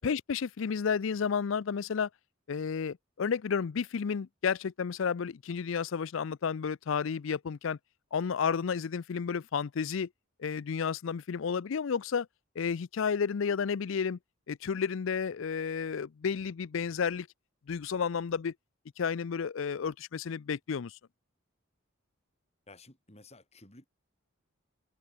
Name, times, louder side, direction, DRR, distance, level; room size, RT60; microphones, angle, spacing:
voice 1, 0.0-2.1 2.5-7.8 8.1-10.1 10.4-12.3 12.6-14.2 14.5-17.3 17.7-18.5 19.0-21.0, left 6 dB, 65° left, 0.4 m, -31 dB
voice 2, 22.7-23.9, left 2 dB, 30° left, 5.1 m, -52 dB
open air
head